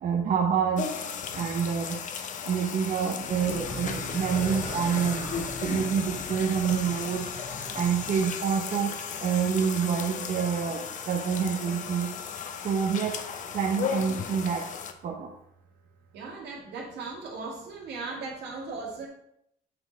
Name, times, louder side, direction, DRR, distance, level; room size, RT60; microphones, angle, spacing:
voice 1, 0.0-0.9 1.3-2.0 2.5-5.3 5.6-7.2 7.7-8.9 9.2-12.1 12.6-13.1 13.5-14.6 15.0-15.3, right 7 dB, 50° right, 1 dB, 0.8 m, -27 dB
sound 1, 0.8-14.9, left 7 dB, 50° left, 0.7 m, -35 dB
sound 2, 3.2-8.3, right 1 dB, 25° right, 1.9 m, -40 dB
voice 2, 16.1-19.1, right 3 dB, 80° right, -2 dB, 2.2 m, -37 dB
7.8 x 4.1 x 4.4 m, 0.76 s
cardioid pair, 110°, 17 cm